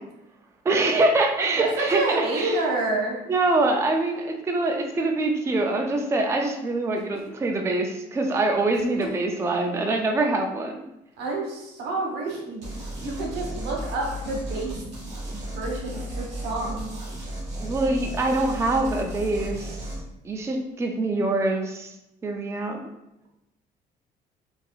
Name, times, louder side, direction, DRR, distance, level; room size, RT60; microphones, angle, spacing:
voice 1, 0.6-2.6 3.3-10.8 17.6-19.9 20.2-21.9 22.2-22.8, right 2 dB, 15° right, 3 dB, 0.4 m, -24 dB
voice 2, 1.6-3.2 8.9-9.1 11.2-12.7 13.0-14.7 15.3-16.9, right 2 dB, 90° right, -1 dB, 1.0 m, -28 dB
sound 1, 12.6-20.0, equal, 45° right, 1.2 m, -34 dB
3.9 x 2.7 x 2.3 m, 0.89 s
cardioid pair, 110°, 17 cm